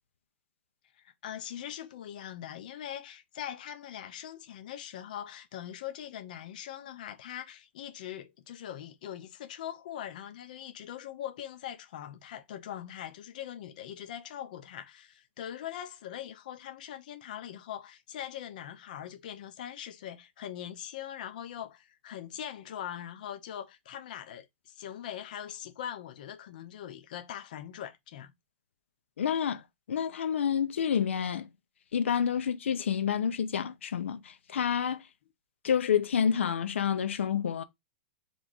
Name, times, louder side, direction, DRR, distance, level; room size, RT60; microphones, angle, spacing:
voice 1, 1.0-28.3, left 10 dB, 45° left, 0.6 m, -42 dB
voice 2, 29.2-31.5 31.9-35.0 35.6-37.6, left 8 dB, 85° left, 0.7 m, -29 dB
3.4 x 3.1 x 4.0 m
hypercardioid pair, 175°, 6 cm